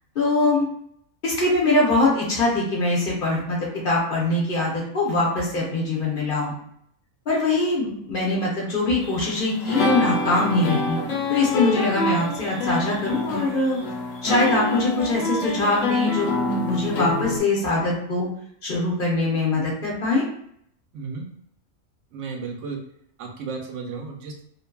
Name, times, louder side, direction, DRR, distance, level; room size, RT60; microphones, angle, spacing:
voice 1, 0.2-0.7 1.2-6.5 7.3-11.0 11.3-13.8 14.2-18.3 18.6-20.2, left 2 dB, 50° left, -4 dB, 0.7 m, -23 dB
sound 1, 9.0-17.4, left 2 dB, 75° left, 1.0 m, -26 dB
voice 2, 20.9-21.3 22.1-22.8 23.2-24.4, right 4 dB, 70° right, 1 dB, 0.8 m, -33 dB
2.5 x 2.5 x 2.2 m, 0.69 s
omnidirectional pair, 1.4 m